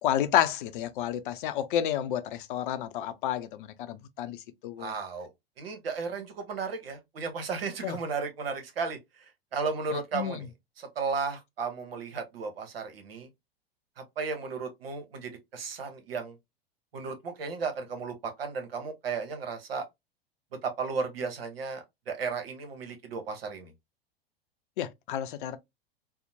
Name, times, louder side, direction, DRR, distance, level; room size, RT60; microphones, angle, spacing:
voice 1, 0.0-4.9 7.8-8.0 9.9-10.4 24.8-25.6, left 10 dB, 60° left, 0.5 m, -30 dB
voice 2, 4.8-5.3 5.6-9.0 9.5-10.5 10.8-13.3 14.2-16.3 16.9-19.8 20.6-23.7, right 5 dB, 75° right, 0.9 m, -34 dB
2.8 x 2.0 x 2.6 m
figure-of-eight pair, 90°, 30 cm